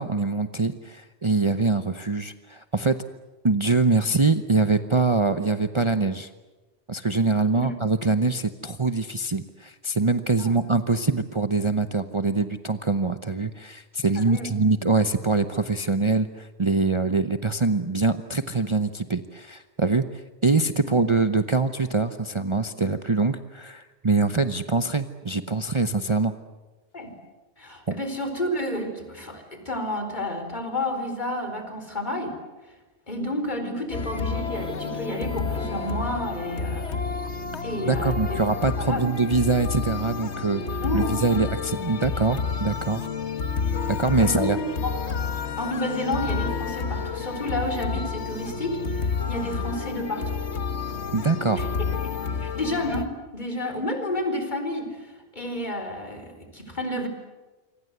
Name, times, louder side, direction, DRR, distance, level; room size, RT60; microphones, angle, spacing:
voice 1, 0.0-3.0 3.4-6.3 6.9-26.3 27.9-28.0 37.8-43.1 43.9-44.6 51.1-51.7, right 3 dB, 30° right, 9 dB, 0.9 m, -24 dB
voice 2, 14.2-14.6 20.8-20.9 26.9-27.1 27.6-32.4 33.1-36.9 37.6-38.4 38.8-39.0 40.8-41.4 44.1-44.5 44.8-44.9 45.6-50.3 51.6-51.7 52.4-55.0 55.3-57.1, left 1 dB, 45° left, 7 dB, 4.6 m, -30 dB
sound 1, 33.9-53.0, left 5 dB, 90° left, 1.8 m, -30 dB
27.5 x 25.0 x 8.1 m, 1.2 s
omnidirectional pair, 1.1 m